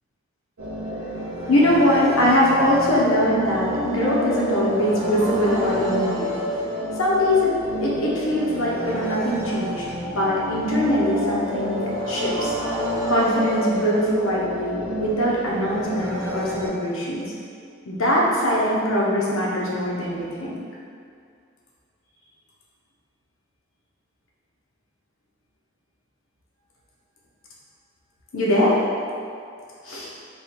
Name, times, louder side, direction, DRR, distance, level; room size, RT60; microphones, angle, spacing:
sound 1, 0.6-16.7, equal, 85° right, 0.9 m, -29 dB
voice 1, 1.5-6.3 7.0-12.5 13.1-17.3 17.8-20.6 28.3-28.8 29.8-30.1, left 1 dB, 85° left, -5 dB, 0.8 m, -22 dB
3.4 x 2.3 x 4.3 m, 2.3 s
head